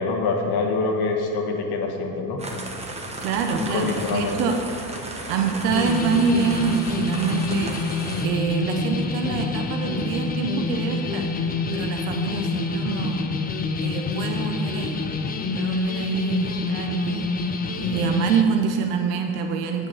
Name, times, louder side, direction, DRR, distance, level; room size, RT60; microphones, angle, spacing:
voice 1, 0.0-2.4 3.6-4.6 16.3-16.4, left 4 dB, 50° left, 2 dB, 1.5 m, -25 dB
sound 1, 2.4-8.3, right 2 dB, 15° right, 1.1 m, -35 dB
voice 2, 3.2-4.6 5.1-11.3 11.7-13.3 13.8-15.0 15.5-17.3 17.8-19.9, right 6 dB, 70° right, 4 dB, 0.8 m, -26 dB
sound 2, 5.7-18.4, left 3 dB, 20° left, 0.5 m, -27 dB
8.3 x 5.4 x 5.7 m, 2.5 s
supercardioid pair, 90°, 48 cm